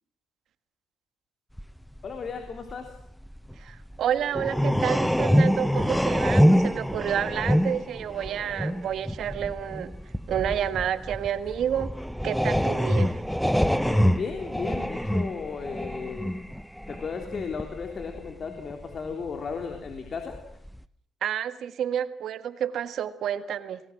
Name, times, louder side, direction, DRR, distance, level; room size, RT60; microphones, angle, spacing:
sound 1, 1.6-1.7 2.0-4.0 4.3-20.4 20.6-20.8, equal, ahead, 0.9 m, -26 dB
voice 1, 2.0-2.9 13.6-16.4 16.9-20.4, left 5 dB, 50° left, 4 dB, 3.6 m, -35 dB
voice 2, 3.6-9.9 10.3-11.9 12.2-13.2 21.2-23.8, right 9 dB, 70° right, 11 dB, 1.6 m, -29 dB
29.5 x 20.0 x 7.6 m, 0.69 s
cardioid pair, 90°, 0 cm